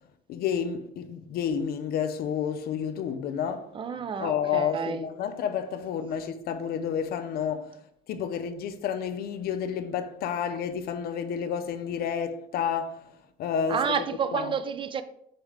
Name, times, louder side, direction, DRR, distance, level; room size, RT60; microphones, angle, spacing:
voice 1, 0.3-3.7 4.2-7.7 8.1-13.0 13.4-13.8 14.3-14.6, left 7 dB, 65° left, 0.5 m, -30 dB
voice 2, 3.7-5.0 13.7-15.0, right 6 dB, 30° right, 0.4 m, -30 dB
4.2 x 3.6 x 3.3 m
cardioid pair, 110°, 17 cm